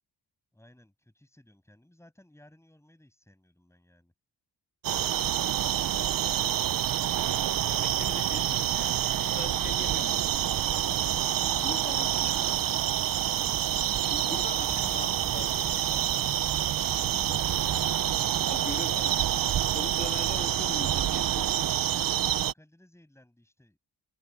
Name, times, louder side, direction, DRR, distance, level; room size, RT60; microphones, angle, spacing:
voice 1, 0.5-4.1 17.4-18.1 18.8-19.5 20.3-20.4 21.9-23.8, left 1 dB, 5° left, 7.5 m, -58 dB
sound 1, 4.8-22.5, right 11 dB, 50° right, 0.7 m, -27 dB
voice 2, 5.7-6.2 7.1-12.9 13.8-16.5 16.9-17.6 18.5-19.1 19.7-21.5, left 3 dB, 20° left, 3.1 m, -43 dB
Motorcycle, 13.3-13.5 13.9-20.1, left 5 dB, 40° left, 3.6 m, -49 dB
wide cardioid pair, 120°, 43 cm